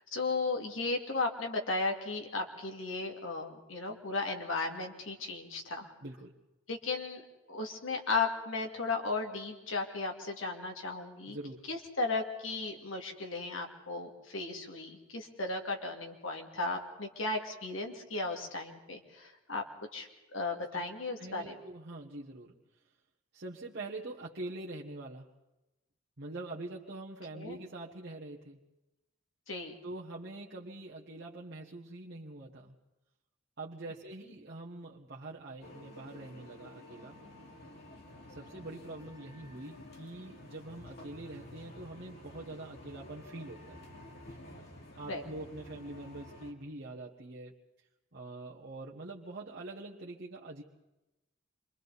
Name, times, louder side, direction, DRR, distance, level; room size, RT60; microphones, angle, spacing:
voice 1, 0.1-5.9 6.7-7.2 7.5-11.4 11.7-19.6 19.9-21.5 27.3-27.6 29.5-29.7 45.1-45.2, left 3 dB, 85° left, 3 dB, 2.4 m, -35 dB
voice 2, 6.0-6.3 11.3-11.7 20.7-20.8 21.2-22.5 23.3-25.3 26.2-28.6 29.8-32.8 33.6-37.2 38.3-43.8 45.0-47.6 48.1-50.6, right 2 dB, 55° right, -4 dB, 1.3 m, -44 dB
sound 1, 35.6-46.5, left 1 dB, 55° left, 2.6 m, -51 dB
27.0 x 23.5 x 4.1 m, 1.0 s
head